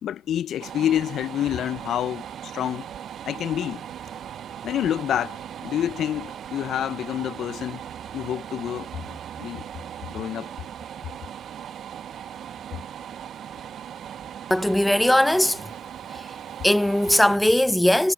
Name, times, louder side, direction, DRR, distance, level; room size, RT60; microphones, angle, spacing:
voice 1, 0.0-2.9 3.3-3.8 4.6-7.8 8.1-9.6 10.0-10.5, left 11 dB, 55° left, 0.8 m, -28 dB
sound 1, 0.6-17.4, right 9 dB, 50° right, 0.6 m, -38 dB
voice 2, 14.5-15.7 16.6-18.1, left 1 dB, 5° left, 0.8 m, -19 dB
hypercardioid pair, 70°, 0 cm